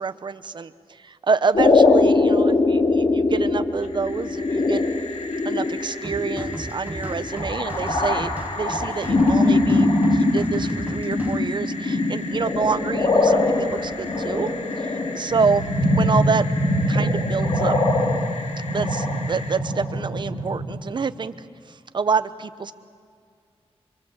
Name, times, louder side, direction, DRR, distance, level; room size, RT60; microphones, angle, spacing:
voice 1, 0.0-4.8 5.4-8.3 8.6-14.5 14.8-15.6 15.9-16.4 16.9-17.8 18.7-22.7, right 5 dB, 45° right, 11 dB, 0.9 m, -27 dB
sound 1, 1.5-20.8, left 2 dB, 55° left, 2.8 m, -22 dB
sound 2, 3.7-19.6, left 3 dB, 80° left, 1.8 m, -38 dB
sound 3, 6.0-11.4, right 2 dB, 15° right, 1.2 m, -35 dB
25.0 x 25.0 x 7.4 m, 2.2 s
wide cardioid pair, 135°, 11 cm